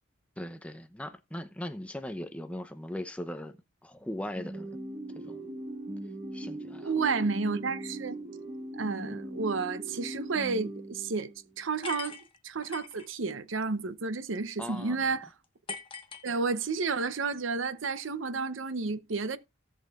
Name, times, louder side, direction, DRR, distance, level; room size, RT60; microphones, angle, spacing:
voice 1, 0.4-3.5 3.8-4.8 5.1-5.4 6.3-6.9 14.6-15.0, left 1 dB, 5° left, 0.7 m, -39 dB
sound 1, 4.3-11.5, right 1 dB, 35° right, 1.2 m, -40 dB
voice 2, 6.8-8.2 8.7-12.2 12.4-15.3 16.2-19.4, right 4 dB, 80° right, 0.8 m, -31 dB
sound 2, 11.8-13.1 15.7-16.8, left 4 dB, 25° left, 1.2 m, -41 dB
17.0 x 6.3 x 2.4 m
head